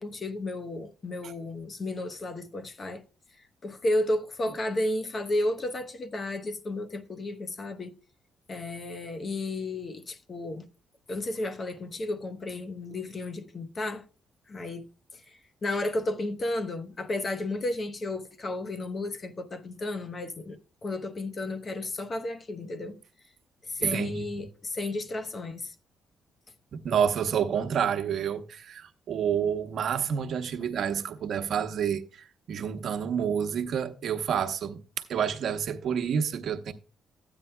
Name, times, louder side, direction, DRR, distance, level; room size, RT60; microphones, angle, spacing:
voice 1, 0.0-3.0 3.4-7.9 8.5-10.7 11.1-14.0 14.5-14.9 15.1-23.0 23.6-25.7, left 2 dB, 35° left, 1.0 m, -33 dB
voice 2, 23.8-24.2 26.7-34.8 35.1-36.7, right 8 dB, 65° right, 0.9 m, -29 dB
14.0 x 8.9 x 2.2 m
cardioid pair, 90°, 0 cm